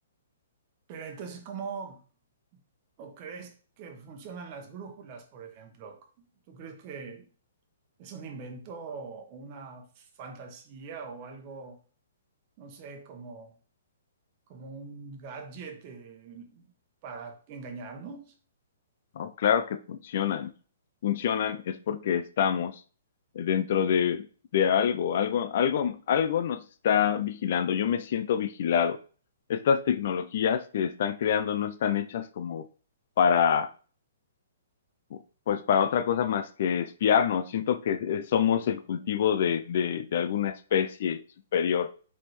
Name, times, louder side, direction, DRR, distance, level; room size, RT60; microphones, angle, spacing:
voice 1, 0.9-2.0 2.5-2.6 3.0-6.0 6.5-7.3 8.0-11.8 12.6-13.6 14.5-16.7 17.0-18.3, right 5 dB, 40° right, 1.0 m, -42 dB
voice 2, 19.2-20.5 21.0-22.8 23.4-24.3 24.5-29.0 29.5-32.6 33.2-33.7 35.1-35.2 35.5-41.2 41.5-41.9, left 8 dB, 55° left, 0.4 m, -26 dB
4.9 x 3.5 x 3.1 m
hypercardioid pair, 135°, 0 cm